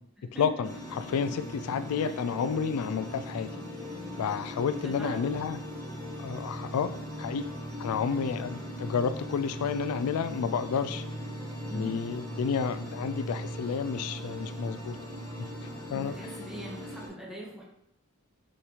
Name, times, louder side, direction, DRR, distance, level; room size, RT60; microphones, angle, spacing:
voice 1, 0.4-3.5 4.2-5.6 6.2-6.9 7.2-7.4 7.8-11.0 11.7-15.0 15.4-15.5 15.9-16.1, left 6 dB, 85° left, 12 dB, 0.3 m, -30 dB
sound 1, 0.6-17.1, equal, 15° left, 1.5 m, -39 dB
voice 2, 4.8-5.2 11.7-12.0 15.9-17.6, right 1 dB, 5° right, -5 dB, 1.6 m, -41 dB
5.7 x 5.4 x 3.2 m, 0.75 s
head